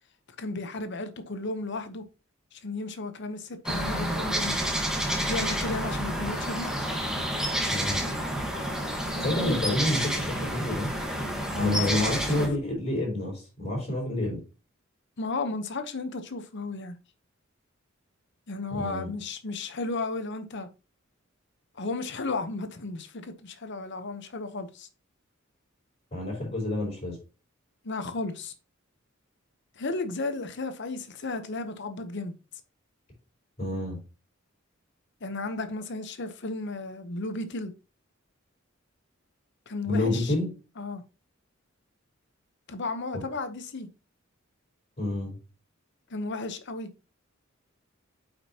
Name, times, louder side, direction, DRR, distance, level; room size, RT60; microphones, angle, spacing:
voice 1, 0.4-2.1 2.5-4.6 5.3-6.7 9.1-9.6 11.5-12.1 12.4-12.5 15.2-17.0 18.5-20.7 21.8-24.9 27.8-28.5 29.8-32.3 35.2-37.7 39.7-40.3 40.8-41.0 42.7-43.9 46.1-46.9, left 3 dB, 60° left, 0.9 m, -34 dB
sound 1, 3.7-12.5, equal, 5° right, 1.4 m, -29 dB
voice 2, 7.7-8.0 9.2-10.9 11.6-14.4 18.7-19.1 26.1-27.2 33.6-34.0 39.9-40.5 43.1-43.2 45.0-45.4, left 1 dB, 35° left, 4.4 m, -28 dB
8.5 x 5.2 x 2.9 m
head